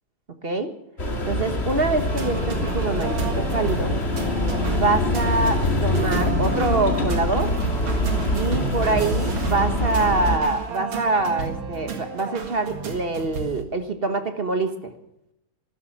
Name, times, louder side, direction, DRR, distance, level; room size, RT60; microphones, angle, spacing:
voice 1, 0.4-0.7 1.3-4.0 4.8-7.5 8.3-14.9, right 3 dB, 35° right, 8 dB, 1.2 m, -25 dB
sound 1, 1.0-10.4, left 1 dB, 30° left, 2.6 m, -24 dB
sound 2, 1.8-13.6, right 5 dB, 70° right, 2.7 m, -32 dB
15.0 x 12.5 x 7.2 m, 0.80 s
omnidirectional pair, 2.3 m